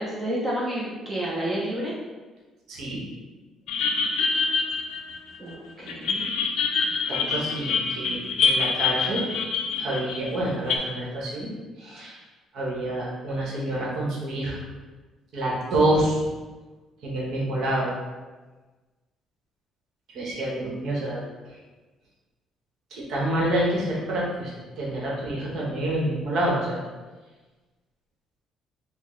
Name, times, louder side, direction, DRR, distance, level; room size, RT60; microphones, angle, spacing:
voice 1, 0.0-1.9 5.4-6.4 6.8-7.8, right 1 dB, 10° right, -5 dB, 0.5 m, -31 dB
voice 2, 2.7-3.0 7.1-9.3 9.8-11.5 11.8-12.2 12.5-14.6 15.3-16.2 17.0-17.9 20.1-21.2 22.9-26.8, right 1 dB, 60° right, -4 dB, 1.0 m, -27 dB
sound 1, 3.7-5.5 5.9-10.8, left 5 dB, 75° left, 0.4 m, -25 dB
4.2 x 2.1 x 3.1 m, 1.3 s
cardioid pair, 155°, 0 cm